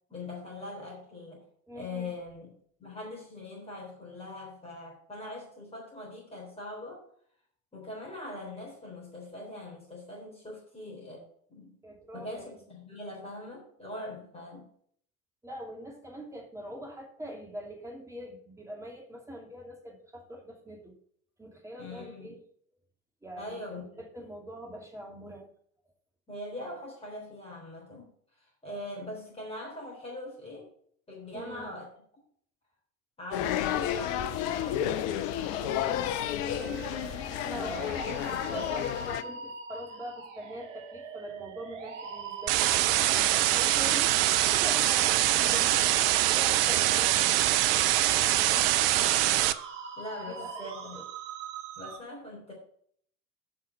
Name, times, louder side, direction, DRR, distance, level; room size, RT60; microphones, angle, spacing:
voice 1, 0.1-1.4 1.8-2.5 2.8-7.0 7.7-11.8 12.1-14.7 21.8-22.3 23.4-24.0 26.3-28.1 28.4-30.7 31.1-31.9 33.2-37.9 38.3-38.8 45.3-45.8 48.3-48.6 50.0-51.0 51.8-52.5, left 2 dB, 15° left, -3 dB, 3.7 m, -42 dB
voice 2, 1.7-2.1 11.8-12.6 15.4-21.0 21.4-22.4 23.2-25.5 31.3-31.7 37.4-44.1 44.5-45.8 46.2-47.6 50.2-50.5 50.8-51.0, equal, 5° right, 0 dB, 2.7 m, -43 dB
sound 1, 33.3-39.2, left 11 dB, 40° left, 0.7 m, -31 dB
sound 2, 36.5-52.0, right 6 dB, 65° right, 1.2 m, -42 dB
sound 3, 42.5-49.5, right 14 dB, 45° right, 0.6 m, -24 dB
7.9 x 5.6 x 7.3 m, 0.62 s
figure-of-eight pair, 80°, 41 cm